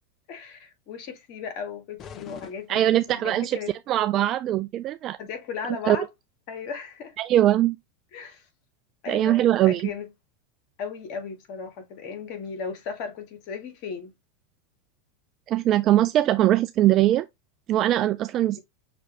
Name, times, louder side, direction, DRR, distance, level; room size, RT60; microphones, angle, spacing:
voice 1, 0.3-3.7 5.2-6.1 6.5-7.1 8.1-8.4 9.0-10.1 10.8-14.1, left 6 dB, 55° left, 1.6 m, -36 dB
sound 1, 2.0-3.5, left 8 dB, 40° left, 0.7 m, -45 dB
voice 2, 2.7-3.6 3.9-5.2 5.9-6.0 7.2-7.8 9.1-9.9 15.5-17.3 17.7-18.6, right 13 dB, 45° right, 0.3 m, -21 dB
5.9 x 3.0 x 2.9 m
hypercardioid pair, 95°, 0 cm